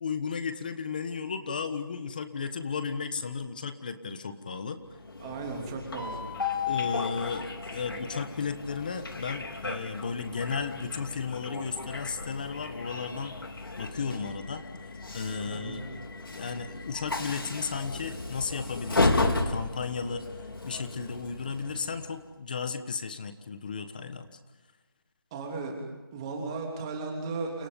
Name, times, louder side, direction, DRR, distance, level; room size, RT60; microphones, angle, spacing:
voice 1, 0.0-4.8 6.7-13.4 13.8-14.6 15.1-20.2 20.6-24.3, left 5 dB, 20° left, 9 dB, 1.3 m, -34 dB
Train, 4.9-22.2, left 3 dB, 70° left, 4.7 m, -34 dB
voice 2, 5.2-6.2 15.4-15.8 25.3-27.7, right 3 dB, 10° right, 1 dB, 3.2 m, -36 dB
29.5 x 29.0 x 5.4 m, 1.1 s
figure-of-eight pair, 175°, 12 cm